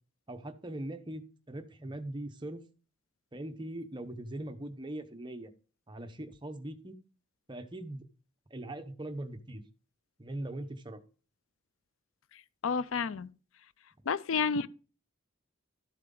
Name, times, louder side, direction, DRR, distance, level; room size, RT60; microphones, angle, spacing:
voice 1, 0.3-2.6 3.3-5.5 5.9-7.0 7.5-8.1 8.5-9.6 10.2-11.0, right 1 dB, 20° right, 0.9 m, -41 dB
voice 2, 12.3-13.3 14.1-14.7, left 5 dB, 70° left, 0.5 m, -31 dB
13.0 x 7.6 x 3.9 m
head